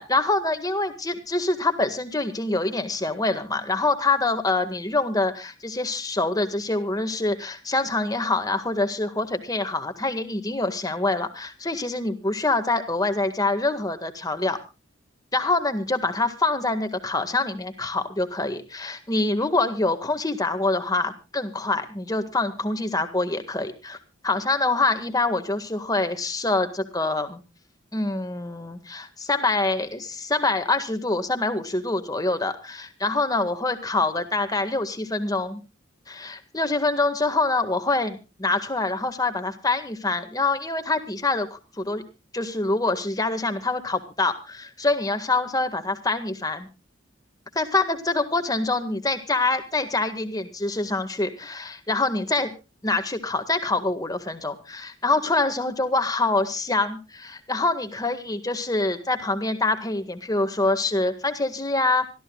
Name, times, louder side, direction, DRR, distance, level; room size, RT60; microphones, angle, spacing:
voice 1, 0.0-14.6 15.3-24.0 24.2-27.4 27.9-35.6 36.1-42.0 42.3-46.7 47.6-52.5 52.8-62.1, left 2 dB, 20° left, 8 dB, 1.8 m, -25 dB
26.0 x 13.5 x 2.3 m, 0.29 s
head